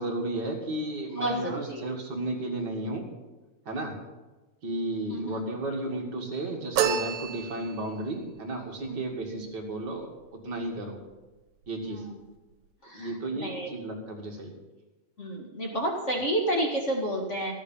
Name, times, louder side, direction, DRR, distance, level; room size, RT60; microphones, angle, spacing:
voice 1, 0.0-3.0 3.6-4.0 4.6-11.0 11.7-12.0 12.9-14.5, right 2 dB, 45° right, 1 dB, 1.5 m, -33 dB
voice 2, 1.2-1.9 5.1-5.5 8.9-9.0 11.8-12.2 12.8-13.7 15.2-17.5, right 1 dB, 50° left, 0 dB, 0.8 m, -30 dB
sound 1, 6.8-8.0, right 8 dB, 85° right, 3.1 m, -28 dB
15.0 x 9.9 x 5.5 m, 1.2 s
omnidirectional pair, 4.5 m